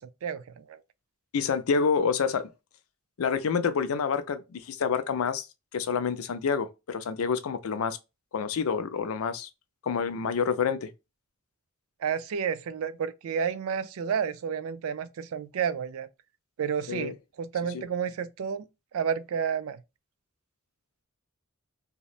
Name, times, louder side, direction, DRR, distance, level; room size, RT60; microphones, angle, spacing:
voice 1, 0.2-0.8 12.0-16.1 16.6-18.7 18.9-19.8, right 7 dB, 70° right, 0.4 m, -31 dB
voice 2, 1.3-2.5 3.2-5.5 5.7-8.0 8.3-9.5 9.8-10.9 16.9-17.1 17.7-17.8, left 6 dB, 70° left, 0.4 m, -28 dB
2.8 x 2.0 x 2.4 m
head